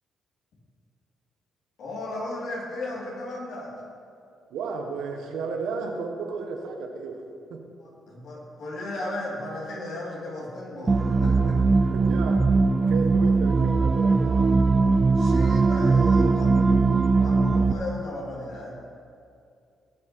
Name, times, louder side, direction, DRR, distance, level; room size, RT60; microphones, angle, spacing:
voice 1, 1.8-3.8 7.8-11.9 15.1-18.7, left 1 dB, 70° left, -3 dB, 3.2 m, -35 dB
voice 2, 4.5-7.2 7.5-7.7 11.8-12.5 12.9-14.5, right 4 dB, 85° right, 3 dB, 1.5 m, -33 dB
sound 1, 10.9-17.7, right 4 dB, 25° right, 0.6 m, -20 dB
18.5 x 6.4 x 4.6 m, 2.5 s
cardioid pair, 90°, 0 cm